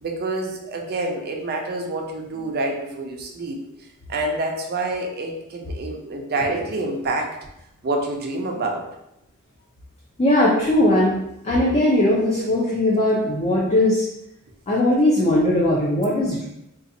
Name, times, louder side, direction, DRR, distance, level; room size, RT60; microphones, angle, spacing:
voice 1, 0.0-7.4 7.8-8.8, right 2 dB, 45° right, 2 dB, 0.5 m, -27 dB
voice 2, 10.2-11.2 11.4-14.0 14.7-16.4, left 1 dB, 30° left, -5 dB, 0.5 m, -19 dB
3.9 x 2.4 x 2.6 m, 0.85 s
head